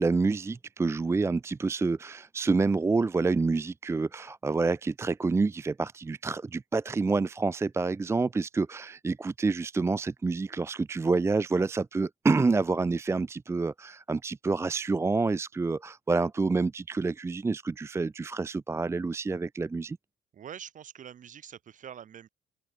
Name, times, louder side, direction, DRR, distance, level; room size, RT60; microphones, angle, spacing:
voice 1, 0.0-20.0, right 3 dB, 15° right, 0.5 m, -28 dB
voice 2, 20.3-22.3, right 9 dB, 50° right, 4.4 m, -45 dB
open air
cardioid pair, 110°, 17 cm